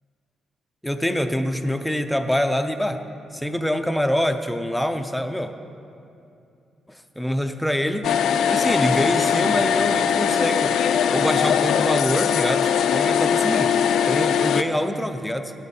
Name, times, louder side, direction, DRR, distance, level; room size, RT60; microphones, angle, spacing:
voice 1, 0.8-3.0 3.3-5.5 7.2-8.1 8.5-10.7 11.1-13.7 14.1-15.5, equal, ahead, 7 dB, 0.4 m, -25 dB
sound 1, 8.0-14.6, left 8 dB, 80° left, 0.3 m, -21 dB
15.5 x 10.0 x 2.8 m, 2.6 s
cardioid pair, 155°, 0 cm